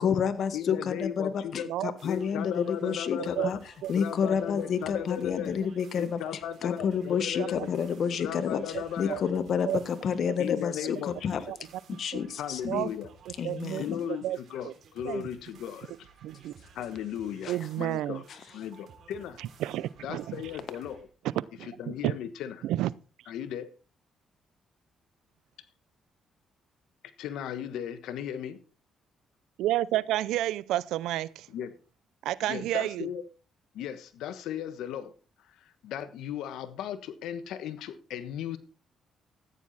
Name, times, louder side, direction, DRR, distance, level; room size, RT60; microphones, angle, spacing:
voice 1, 0.0-3.6 3.9-6.2 6.6-8.6 9.0-11.0 11.2-11.4 11.9-12.9 13.4-14.0 17.4-17.5, left 7 dB, 60° left, 1.5 m, -29 dB
voice 2, 0.5-1.7 2.0-3.6 3.9-5.6 5.9-7.7 8.1-9.2 10.4-11.1 12.4-13.1 13.7-16.1 16.7-18.2 18.5-19.4 20.0-21.1 21.6-22.5 23.3-23.7 27.2-28.6 31.5-31.7 32.5-33.2 33.7-35.1 35.4-38.6, left 9 dB, 85° left, 1.3 m, -36 dB
sound 1, 2.0-21.0, right 6 dB, 70° right, 3.9 m, -56 dB
voice 3, 2.8-3.5 3.8-3.9 7.4-7.7 8.7-8.8 9.1-9.2 9.7-9.8 11.5-11.6 12.7-12.9 13.3-13.8 14.2-14.4 14.6-14.7 15.0-15.2 16.2-16.5 17.5-18.2 19.4-20.4 21.6-22.1 22.6-22.9 29.6-31.5 32.2-33.1, right 14 dB, 90° right, 0.5 m, -31 dB
14.0 x 9.5 x 4.2 m
cardioid pair, 90°, 0 cm